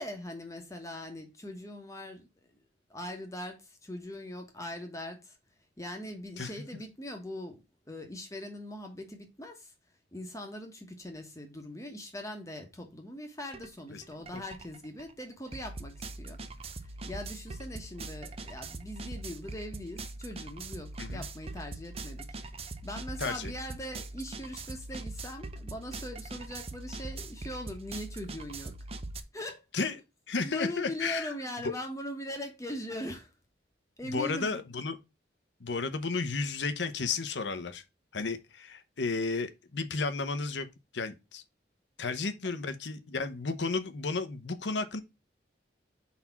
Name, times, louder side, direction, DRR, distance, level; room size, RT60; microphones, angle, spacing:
voice 1, 0.0-2.3 2.9-5.4 5.8-9.7 10.1-16.4 16.8-28.8 29.3-29.6 30.4-33.3 34.0-34.6 42.0-42.1, left 1 dB, 15° left, 1.1 m, -41 dB
sound 1, 13.5-13.7 14.0-29.2, right 2 dB, 35° right, 0.6 m, -42 dB
voice 2, 23.2-23.5 29.7-30.0 30.3-31.4 31.6-31.7 34.0-35.0 35.6-37.8 38.1-40.7 40.9-41.4 42.0-45.0, left 4 dB, 75° left, 0.8 m, -33 dB
4.3 x 4.2 x 5.7 m
head